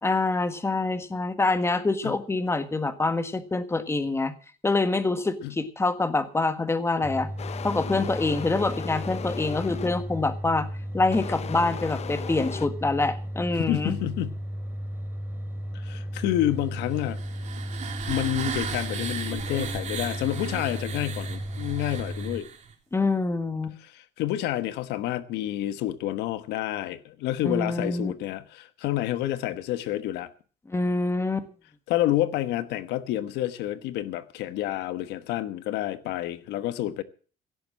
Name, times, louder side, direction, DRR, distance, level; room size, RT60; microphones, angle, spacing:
voice 1, 0.0-4.3 4.6-7.3 7.6-10.7 10.9-14.0 22.9-23.7 27.4-28.1 30.7-31.5, left 3 dB, 15° left, 1.6 m, -26 dB
sound 1, 7.0-22.4, equal, 15° right, 2.6 m, -35 dB
sound 2, 7.4-10.2 11.1-12.7, left 8 dB, 40° left, 0.8 m, -37 dB
voice 2, 13.6-14.4 15.7-17.2 18.1-22.5 23.8-30.3 31.9-37.0, left 14 dB, 85° left, 1.2 m, -29 dB
sound 3, 16.9-22.7, right 7 dB, 45° right, 3.1 m, -36 dB
16.5 x 7.8 x 7.5 m
cardioid pair, 110°, 17 cm